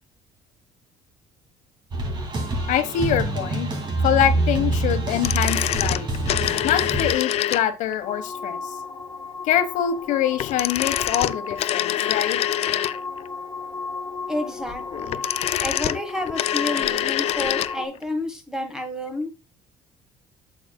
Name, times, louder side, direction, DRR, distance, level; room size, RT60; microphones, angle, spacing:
Hard Rock Loop, 1.9-7.1, right 2 dB, 35° right, 2.4 m, -25 dB
voice 1, 2.7-3.7 4.0-6.1 6.6-8.8 9.4-12.4 17.4-17.5, left 10 dB, 75° left, 9 dB, 1.3 m, -24 dB
sound 1, 5.1-7.9 10.4-13.3 14.9-17.8 18.0-18.1, left 12 dB, 55° left, 0.4 m, -25 dB
sound 2, 8.0-17.9, left 4 dB, 35° left, 1.9 m, -34 dB
voice 2, 14.3-15.3 15.6-19.3, left 1 dB, 5° right, 6 dB, 1.4 m, -30 dB
8.2 x 7.1 x 2.2 m, 0.28 s
cardioid pair, 135°, 13 cm